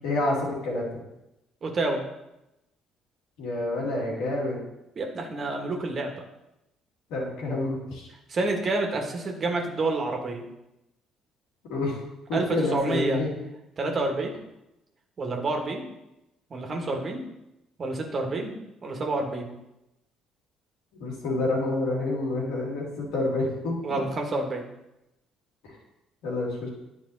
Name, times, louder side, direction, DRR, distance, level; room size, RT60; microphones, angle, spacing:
voice 1, 0.0-1.0 3.4-4.6 7.1-8.1 11.7-12.0 12.3-13.3 21.0-23.7 25.6-25.8 26.2-26.7, left 2 dB, 75° left, -4 dB, 2.4 m, -28 dB
voice 2, 1.6-2.0 5.0-6.2 8.3-10.5 12.3-12.5 12.7-13.2 13.8-14.3 15.2-15.8 16.5-17.2 17.8-18.6 18.8-19.5 23.8-24.6, right 2 dB, 45° right, 2 dB, 1.6 m, -28 dB
10.5 x 4.2 x 4.0 m, 0.90 s
hypercardioid pair, 55°, 0 cm